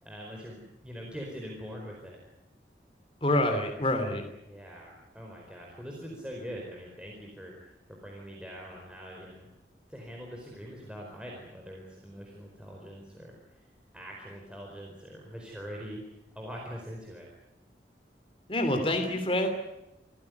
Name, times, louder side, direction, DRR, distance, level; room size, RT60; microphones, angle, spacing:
voice 1, 0.0-2.2 4.4-9.5 9.9-13.3 13.9-16.0 16.3-17.3, equal, 5° right, -1 dB, 4.7 m, -43 dB
voice 2, 3.2-4.2 18.5-19.5, left 1 dB, 30° left, 5 dB, 3.1 m, -26 dB
27.5 x 16.0 x 9.5 m, 0.88 s
head